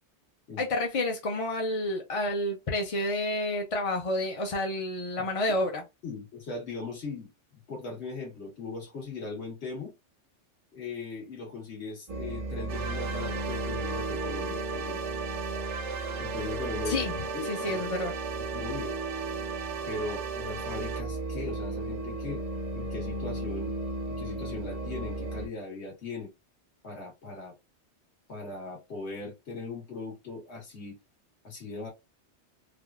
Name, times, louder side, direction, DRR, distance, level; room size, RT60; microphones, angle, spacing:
voice 1, 0.6-5.8 16.9-17.1 17.5-18.1, left 1 dB, 40° left, 0.5 m, -29 dB
voice 2, 6.0-7.3 7.7-9.9 10.7-15.0 16.2-17.8 18.4-18.9 19.9-22.4 22.7-23.7 24.1-26.3 26.8-27.5 28.3-31.0 31.4-31.9, left 3 dB, 65° left, 1.6 m, -39 dB
sound 1, 12.1-25.5, right 2 dB, 45° right, 0.5 m, -35 dB
sound 2, 12.7-21.0, right 7 dB, 80° right, 0.9 m, -37 dB
3.4 x 2.4 x 2.3 m
omnidirectional pair, 1.2 m